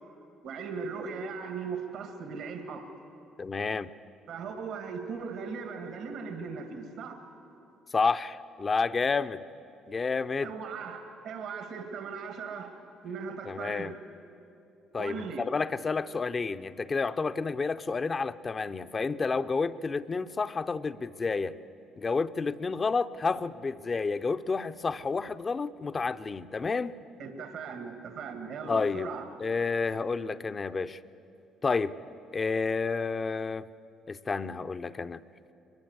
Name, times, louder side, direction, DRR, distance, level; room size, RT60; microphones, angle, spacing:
voice 1, 0.4-2.9 4.3-7.2 10.4-12.8 13.0-13.9 15.0-15.5 27.2-29.3, right 5 dB, 70° right, 6 dB, 1.9 m, -38 dB
voice 2, 3.4-3.9 7.9-9.4 9.9-10.5 13.5-13.9 14.9-21.6 22.0-27.0 28.7-29.1 29.4-31.0 31.6-32.0 32.3-33.7 34.1-35.2, left 4 dB, 35° left, 12 dB, 0.7 m, -30 dB
23.0 x 21.5 x 8.1 m, 2.7 s
supercardioid pair, 60°, 0 cm